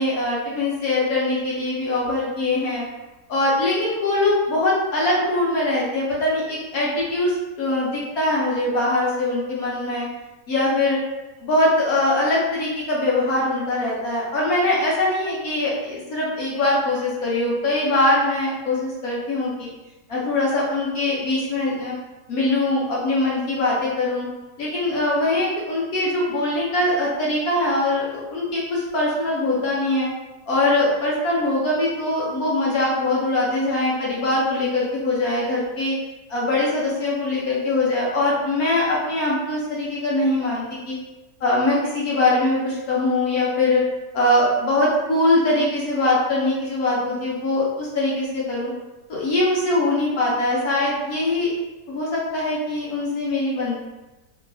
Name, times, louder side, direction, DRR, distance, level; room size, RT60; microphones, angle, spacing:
voice 1, 0.0-2.9 3.3-10.1 10.5-11.0 11.4-19.7 20.1-21.9 22.3-24.3 24.6-30.1 30.5-35.9 36.3-41.0 41.4-43.8 44.1-48.7 49.1-51.5 51.9-53.8, left 2 dB, 60° left, -5 dB, 1.1 m, -22 dB
3.1 x 2.8 x 2.6 m, 1.1 s
omnidirectional pair, 2.0 m